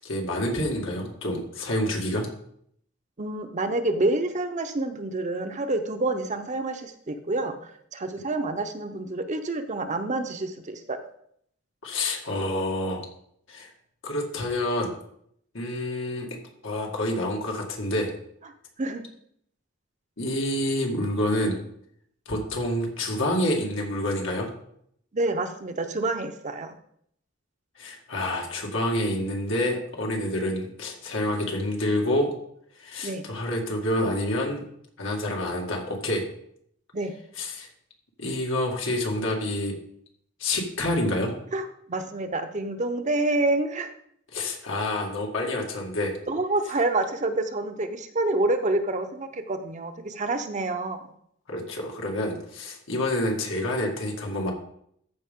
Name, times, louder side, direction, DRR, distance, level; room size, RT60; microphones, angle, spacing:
voice 1, 0.0-2.3 11.8-13.1 13.5-13.7 14.0-15.0 15.5-16.3 16.6-18.1 20.2-21.6 22.3-24.5 27.8-32.3 32.8-34.6 35.0-36.2 37.4-37.7 38.2-39.7 40.4-41.3 44.3-46.2 51.5-54.5, left 1 dB, 80° left, 1 dB, 2.0 m, -28 dB
voice 2, 3.2-11.0 18.8-19.0 25.1-26.8 33.0-33.3 36.9-37.1 41.5-43.9 46.3-51.0, right 2 dB, 40° right, 7 dB, 0.7 m, -28 dB
14.0 x 5.3 x 3.7 m, 0.68 s
head